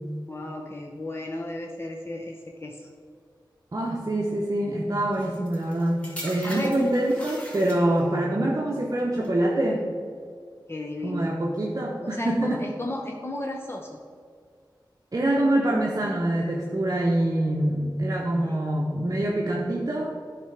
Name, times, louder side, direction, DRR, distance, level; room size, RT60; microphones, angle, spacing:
voice 1, 0.3-2.9 6.4-6.7 10.7-11.3 12.0-14.0 18.4-18.6, left 1 dB, 30° left, 1 dB, 0.7 m, -34 dB
voice 2, 3.7-9.8 11.0-12.6 15.1-20.1, right 1 dB, 45° right, -1 dB, 0.8 m, -25 dB
sound 1, 5.1-8.2 9.0-9.3, equal, 15° left, 1.9 m, -41 dB
8.9 x 3.4 x 5.9 m, 2.1 s
cardioid pair, 45°, 8 cm